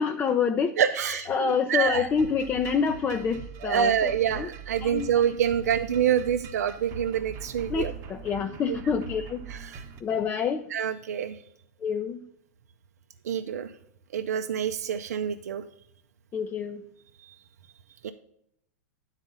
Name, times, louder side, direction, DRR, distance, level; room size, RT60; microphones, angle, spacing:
voice 1, 0.0-0.8 1.1-4.5 4.8-5.1 7.7-9.4 10.0-10.7 11.8-12.2 16.3-16.8, left 6 dB, 25° left, 6 dB, 0.5 m, -27 dB
voice 2, 0.8-2.1 3.6-7.9 8.7-8.8 9.5-9.8 10.7-11.4 13.2-13.7 14.1-15.6 18.0-18.1, right 9 dB, 75° right, 7 dB, 0.5 m, -26 dB
sound 1, 1.3-10.0, right 5 dB, 40° right, 1.0 m, -42 dB
9.7 x 4.1 x 5.4 m, 0.74 s
hypercardioid pair, 105°, 9 cm